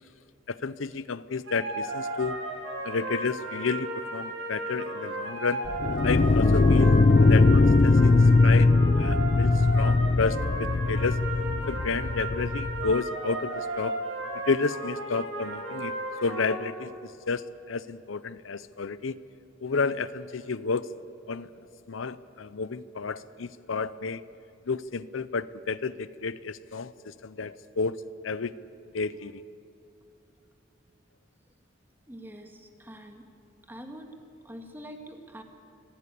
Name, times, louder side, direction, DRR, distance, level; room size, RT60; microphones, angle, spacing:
voice 1, 0.5-2.4 2.8-5.6 6.0-6.9 7.2-8.7 9.0-11.2 11.7-14.0 14.5-15.9 16.2-19.2 19.6-20.9 21.3-21.5 21.9-24.2 24.7-28.0 28.2-28.5 28.9-29.4, left 4 dB, 85° left, 16 dB, 0.6 m, -31 dB
sound 1, 1.4-16.5, right 1 dB, 80° right, 5.6 m, -35 dB
sound 2, 5.7-12.9, left 3 dB, 40° left, 0.5 m, -21 dB
voice 2, 32.1-33.2 33.7-34.2 34.4-35.4, equal, 10° right, 4 dB, 1.8 m, -44 dB
25.5 x 16.5 x 8.4 m, 2.9 s
head